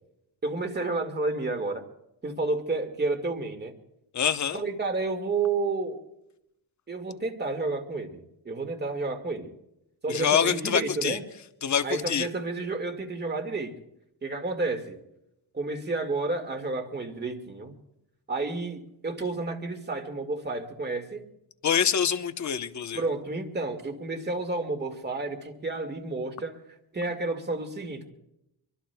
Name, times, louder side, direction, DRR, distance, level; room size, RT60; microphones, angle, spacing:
voice 1, 0.4-1.8 2.2-3.7 4.5-6.0 6.9-9.5 10.0-11.2 11.8-13.7 14.2-15.0 15.5-17.7 18.3-21.3 22.9-26.6 26.9-28.1, right 3 dB, 25° right, 5 dB, 1.9 m, -31 dB
voice 2, 4.1-4.6 10.1-11.2 11.6-12.3 21.6-23.0, left 8 dB, 45° left, 10 dB, 0.9 m, -25 dB
24.5 x 23.5 x 2.3 m, 0.83 s
cardioid pair, 110°, 38 cm